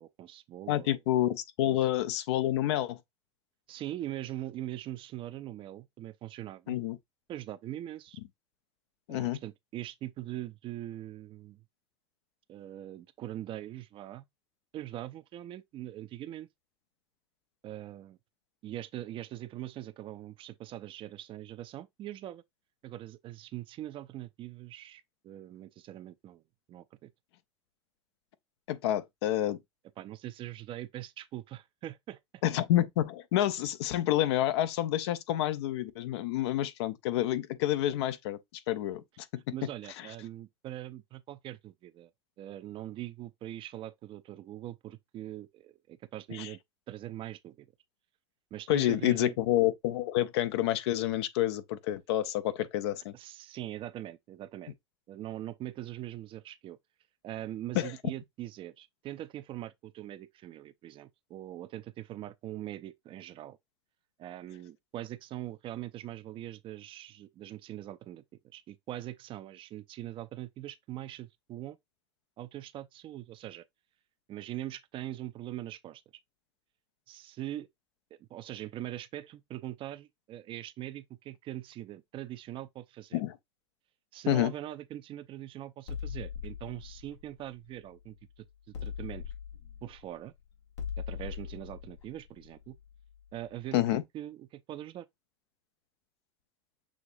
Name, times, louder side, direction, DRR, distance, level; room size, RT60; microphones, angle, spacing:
voice 1, 0.0-1.0 1.7-1.9 3.7-6.8 7.3-8.2 9.1-11.6 12.5-14.2 14.7-16.5 17.6-18.2 18.6-22.4 22.8-26.4 26.7-27.1 30.0-32.2 39.5-42.1 42.4-46.6 46.9-47.7 48.5-49.4 53.1-54.7 55.1-56.8 57.2-63.6 64.2-71.8 72.4-73.6 74.3-76.0 77.1-77.7 78.2-83.2 84.1-89.2 89.8-90.3 91.0-92.8 93.3-95.1, right 13 dB, 35° right, 0.4 m, -42 dB
voice 2, 0.7-3.0 6.7-7.0 9.1-9.4 28.7-29.6 32.4-38.4 38.7-39.4 46.3-46.5 48.7-53.1 57.7-57.9 83.1-83.4 84.3-84.5 93.7-94.0, left 13 dB, 70° left, 0.6 m, -28 dB
sound 1, 85.9-88.2 88.7-93.4, left 8 dB, 85° left, 1.3 m, -41 dB
6.3 x 2.8 x 2.5 m
hypercardioid pair, 95°, 14 cm